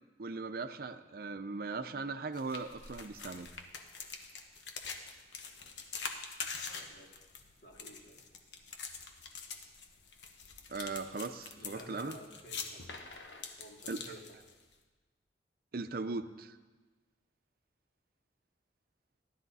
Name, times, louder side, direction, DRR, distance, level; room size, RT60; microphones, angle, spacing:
voice 1, 0.2-3.5 10.7-12.2 13.9-14.1 15.7-16.6, right 3 dB, 55° right, 10 dB, 0.6 m, -39 dB
sound 1, 2.3-14.8, left 5 dB, 85° left, 1.2 m, -45 dB
voice 2, 6.7-7.2 7.6-8.2 11.6-12.8 13.6-14.4, right 1 dB, 60° left, -1 dB, 2.2 m, -52 dB
16.5 x 12.0 x 4.1 m, 1.3 s
head